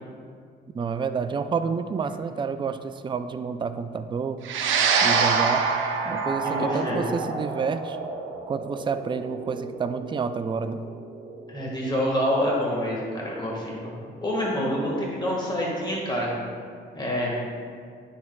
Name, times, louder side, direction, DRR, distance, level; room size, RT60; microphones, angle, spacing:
voice 1, 0.7-4.4 5.0-5.7 6.1-8.0 8.5-10.8, right 5 dB, 25° right, 10 dB, 0.3 m, -29 dB
sound 1, 4.4-13.0, right 5 dB, 75° right, 0.7 m, -27 dB
voice 2, 6.4-7.1 11.5-16.3 16.9-17.4, equal, 20° left, -4 dB, 1.6 m, -27 dB
9.7 x 6.5 x 2.3 m, 2.1 s
cardioid pair, 90°, 20 cm